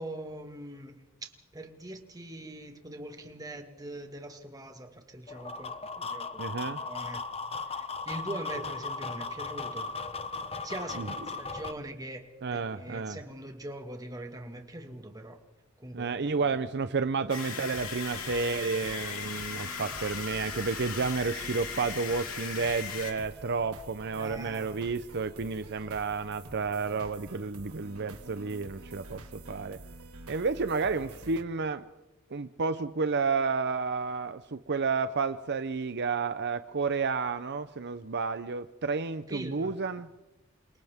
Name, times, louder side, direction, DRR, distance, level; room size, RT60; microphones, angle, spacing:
voice 1, 0.0-7.2 7.6-9.9 10.6-15.4 15.8-16.6 24.2-24.8 39.3-39.8, right 1 dB, 15° right, 1.9 m, -42 dB
sound 1, 5.3-11.7, left 4 dB, 30° left, 1.0 m, -37 dB
voice 2, 6.4-6.8 11.0-11.1 12.4-13.2 15.9-29.8 30.3-31.8 32.3-40.1, right 4 dB, 50° right, 0.7 m, -31 dB
sound 2, 17.3-23.1, left 6 dB, 80° left, 3.3 m, -38 dB
sound 3, 17.3-31.4, right 2 dB, 80° right, 2.0 m, -48 dB
29.0 x 27.0 x 3.6 m
head